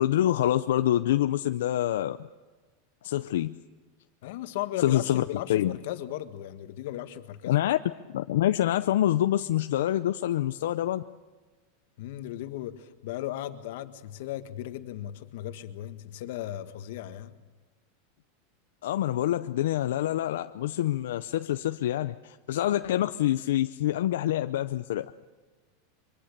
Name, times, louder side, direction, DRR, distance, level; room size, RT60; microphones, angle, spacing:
voice 1, 0.0-2.3 3.0-3.6 4.8-5.2 5.5-5.8 7.5-7.8 8.1-11.0 18.8-25.1, left 13 dB, 85° left, 0.6 m, -26 dB
voice 2, 4.2-7.6 12.0-17.4, left 13 dB, 65° left, 1.7 m, -36 dB
24.0 x 24.0 x 6.7 m
supercardioid pair, 155°, 0 cm